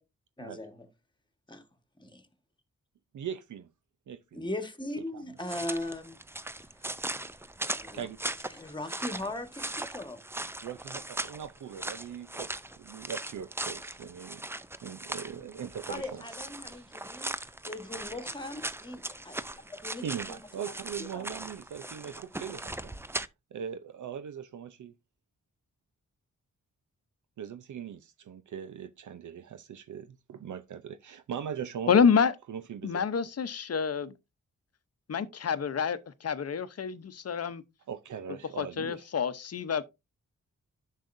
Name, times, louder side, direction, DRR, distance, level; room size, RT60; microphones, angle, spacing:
voice 1, 0.4-0.9 1.5-1.6 2.0-2.3 4.3-6.2 7.7-8.1 8.5-10.2 15.9-17.3 17.7-19.4 19.7-20.4 21.0-21.2, left 1 dB, 15° left, 1.5 m, -39 dB
voice 2, 3.1-3.7 4.1-4.4 5.1-5.2 7.9-8.2 10.6-12.5 12.8-14.5 14.8-16.3 16.7-16.9 20.0-22.9 23.5-24.9 27.4-32.0 32.5-33.1 37.9-39.1, right 8 dB, 70° right, 0.6 m, -40 dB
sound 1, 5.4-23.3, right 1 dB, 10° right, 0.5 m, -39 dB
voice 3, 31.9-32.3 32.8-34.1 35.1-37.6 38.6-39.8, left 6 dB, 50° left, 0.8 m, -27 dB
10.0 x 6.5 x 2.6 m
cardioid pair, 70°, 31 cm